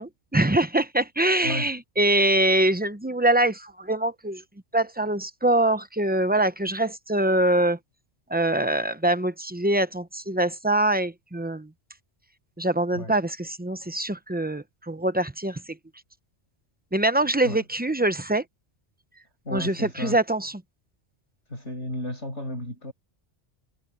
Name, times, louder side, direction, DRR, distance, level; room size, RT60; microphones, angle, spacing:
voice 1, 0.0-4.4 4.7-7.8 8.3-11.7 12.6-15.6 16.9-18.4 19.5-20.5, right 1 dB, 10° right, 0.6 m, -24 dB
voice 2, 19.5-20.2 21.5-22.9, left 1 dB, 75° left, 7.4 m, -33 dB
omnidirectional pair, 1.2 m